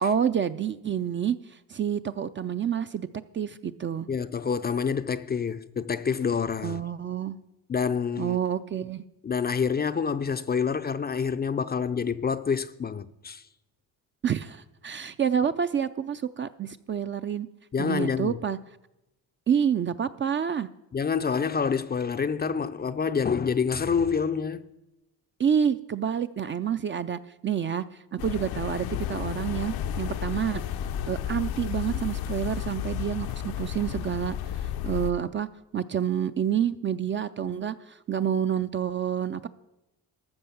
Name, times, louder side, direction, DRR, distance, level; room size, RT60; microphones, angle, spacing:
voice 1, 0.0-3.1 3.3-4.1 6.6-7.4 8.2-9.0 14.2-17.5 17.8-18.6 19.5-20.7 25.4-27.8 28.1-30.6 31.1-35.5 35.7-39.5, right 8 dB, 30° right, 0.4 m, -28 dB
voice 2, 4.1-6.8 7.7-8.4 9.2-13.4 17.7-18.4 20.9-24.6, left 6 dB, 25° left, 0.5 m, -27 dB
sound 1, 28.2-35.1, left 10 dB, 70° left, 0.7 m, -32 dB
13.5 x 6.4 x 7.0 m
cardioid pair, 90°, 39 cm